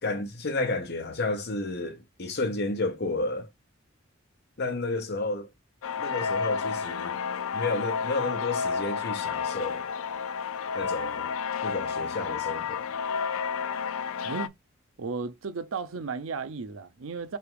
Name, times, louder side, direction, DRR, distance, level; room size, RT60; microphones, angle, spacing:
voice 1, 0.0-3.5 4.6-5.5 6.0-7.2 7.5-9.8 10.7-11.3 11.6-12.8, left 2 dB, 55° left, 0.9 m, -31 dB
sound 1, 5.8-14.5, left 6 dB, 90° left, 0.4 m, -31 dB
voice 2, 15.0-17.4, right 5 dB, 80° right, 0.6 m, -34 dB
3.4 x 2.9 x 4.7 m
head